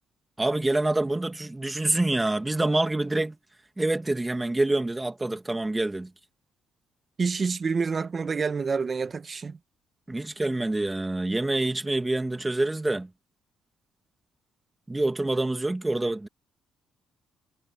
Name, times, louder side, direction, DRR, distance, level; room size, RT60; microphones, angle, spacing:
voice 1, 0.4-3.4 3.8-6.1 10.1-13.1 14.9-16.3, right 2 dB, 15° right, 2.2 m, -26 dB
voice 2, 7.2-9.6, right 5 dB, 35° right, 1.1 m, -27 dB
cardioid pair, 85°, 0 cm